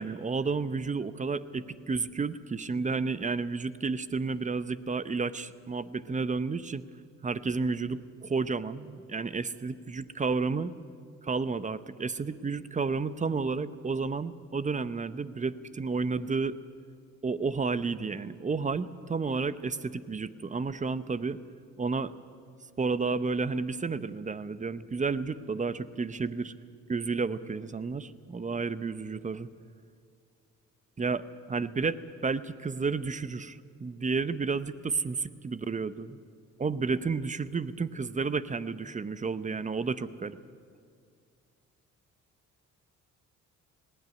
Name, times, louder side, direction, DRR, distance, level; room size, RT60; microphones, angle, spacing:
voice 1, 0.0-6.8 7.2-10.7 11.2-16.6 17.2-21.4 21.8-22.1 22.8-26.5 26.9-29.5 31.0-36.2 36.6-40.4, right 4 dB, 25° right, 15 dB, 0.8 m, -31 dB
19.5 x 17.0 x 9.5 m, 2.3 s
cardioid pair, 90°, 30 cm